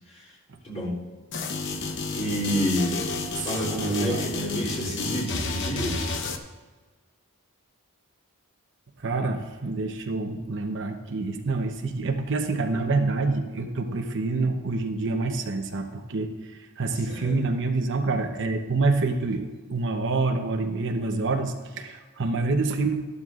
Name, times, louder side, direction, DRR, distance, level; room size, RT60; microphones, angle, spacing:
voice 1, 0.6-1.0 2.1-3.1 3.4-6.1 17.1-17.5, equal, 30° left, -6 dB, 3.1 m, -29 dB
sound 1, 1.3-6.4, left 3 dB, 55° left, 0.8 m, -31 dB
voice 2, 3.8-4.2 5.0-5.3 9.0-16.3 16.8-23.0, right 3 dB, 55° right, 4 dB, 0.9 m, -27 dB
13.5 x 12.0 x 2.5 m, 1.4 s
head